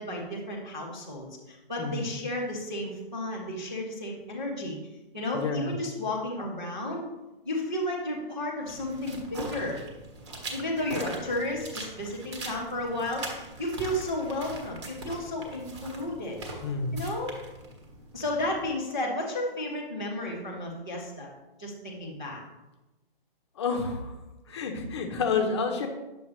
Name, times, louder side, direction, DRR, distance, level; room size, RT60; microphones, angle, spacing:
voice 1, 0.0-4.8 5.1-7.0 7.4-9.8 10.5-16.4 16.9-17.3 18.1-21.3 21.6-22.4, left 1 dB, 5° right, -11 dB, 0.4 m, -33 dB
voice 2, 5.3-5.7 16.6-16.9 23.6-24.1 24.5-25.9, left 4 dB, 30° left, 5 dB, 0.9 m, -29 dB
sound 1, 8.7-18.7, right 2 dB, 30° right, 1.4 m, -41 dB
9.8 x 7.0 x 3.2 m, 1.0 s
hypercardioid pair, 170°, 29 cm